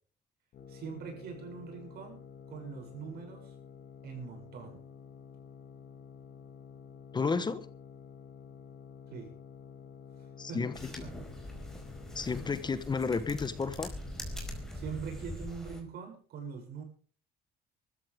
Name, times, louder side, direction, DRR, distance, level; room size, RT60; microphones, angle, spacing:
sound 1, 0.5-15.1, left 7 dB, 65° left, 2.4 m, -51 dB
voice 1, 0.7-3.6 4.0-4.8 9.1-9.3 10.2-10.7 11.0-11.2 14.7-16.8, right 6 dB, 70° right, 7.6 m, -43 dB
voice 2, 7.1-7.7 10.4-11.0 12.1-13.9, left 5 dB, 25° left, 1.2 m, -32 dB
sound 2, 10.7-15.8, left 1 dB, 5° left, 4.7 m, -43 dB
23.0 x 13.5 x 3.7 m
cardioid pair, 110°, 17 cm